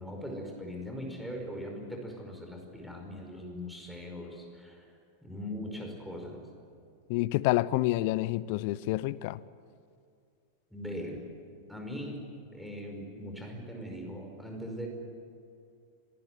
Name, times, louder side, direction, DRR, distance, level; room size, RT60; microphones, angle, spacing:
voice 1, 0.0-6.5 10.7-11.3 11.7-12.3 12.5-14.9, equal, ahead, 1 dB, 5.3 m, -40 dB
voice 2, 7.1-9.4, left 17 dB, 45° left, 20 dB, 0.7 m, -28 dB
25.5 x 19.0 x 9.8 m, 2.4 s
figure-of-eight pair, 90°, 0 cm